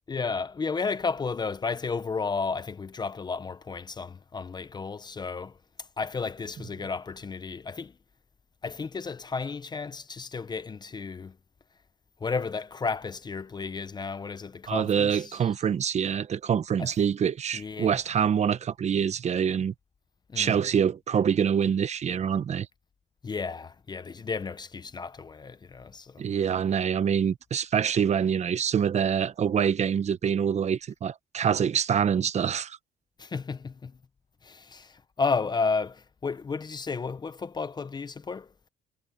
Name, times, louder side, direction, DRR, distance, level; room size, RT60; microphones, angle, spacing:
voice 1, 0.1-5.6 6.0-7.9 8.6-11.4 12.2-15.5 16.8-16.9 17.5-18.0 20.3-20.6 23.2-26.2 33.2-33.9 34.4-38.5, left 4 dB, 25° left, 0.8 m, -33 dB
voice 2, 14.7-19.7 20.4-22.7 26.2-32.8, right 8 dB, 40° right, 1.1 m, -25 dB
cardioid pair, 110°, 17 cm